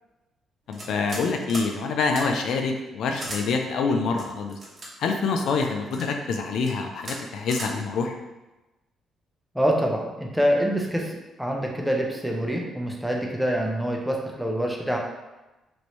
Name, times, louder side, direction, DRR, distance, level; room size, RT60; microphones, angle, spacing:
voice 1, 0.7-4.6 5.0-8.2, left 4 dB, 75° left, 4 dB, 0.3 m, -26 dB
sound 1, 0.7-1.2 1.5-1.7 2.1-2.2 3.2-3.4 4.2-4.9 5.6-6.1 6.6-6.7 7.0-7.2 7.5-7.7, right 1 dB, 35° right, 0.9 m, -36 dB
voice 2, 9.5-15.0, equal, ahead, -1 dB, 0.6 m, -25 dB
3.1 x 2.6 x 3.0 m, 1.1 s
cardioid pair, 90°, 0 cm